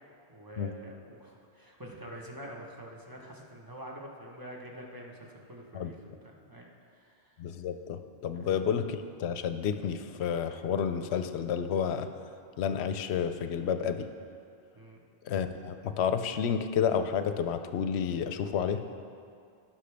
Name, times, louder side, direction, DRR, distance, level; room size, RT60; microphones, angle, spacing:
voice 1, 0.3-7.4 8.3-8.5 14.7-15.0, right 1 dB, 20° right, -2 dB, 1.0 m, -46 dB
voice 2, 7.4-12.1 12.6-14.1 15.3-18.8, left 7 dB, 75° left, 9 dB, 0.8 m, -30 dB
16.5 x 6.0 x 3.4 m, 2.4 s
omnidirectional pair, 1.1 m